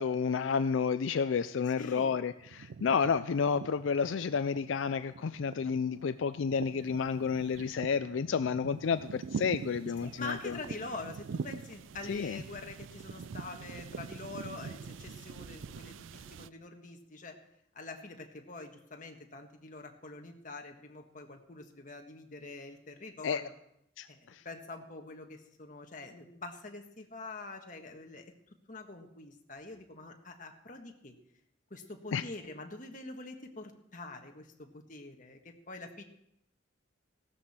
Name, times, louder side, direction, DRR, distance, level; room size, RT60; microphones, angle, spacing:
voice 1, 0.0-10.6 12.1-12.4 23.2-23.4 24.0-24.4 32.1-32.2, left 6 dB, 80° left, 12 dB, 0.4 m, -31 dB
sound 1, 1.4-2.0 2.2-16.5, right 5 dB, 85° right, 0.4 m, -44 dB
voice 2, 1.8-2.1 10.0-17.4 17.7-23.5 24.1-28.3 28.7-31.2 31.7-36.0, left 3 dB, 40° left, 4 dB, 1.5 m, -45 dB
16.5 x 12.5 x 4.3 m, 0.77 s
head